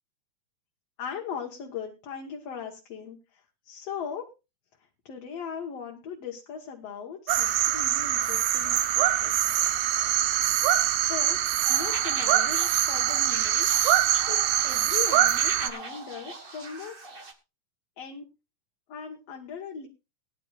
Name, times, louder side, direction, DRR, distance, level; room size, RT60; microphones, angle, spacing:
voice 1, 1.0-4.3 5.1-9.3 10.9-11.4 11.7-17.3 18.0-18.2 18.9-19.9, left 7 dB, 60° left, 1 dB, 2.3 m, -39 dB
sound 1, 7.3-15.7, right 12 dB, 75° right, 2.1 m, -24 dB
sound 2, 11.6-17.3, right 3 dB, 45° right, 0.7 m, -41 dB
21.0 x 10.5 x 2.4 m, 0.27 s
omnidirectional pair, 3.6 m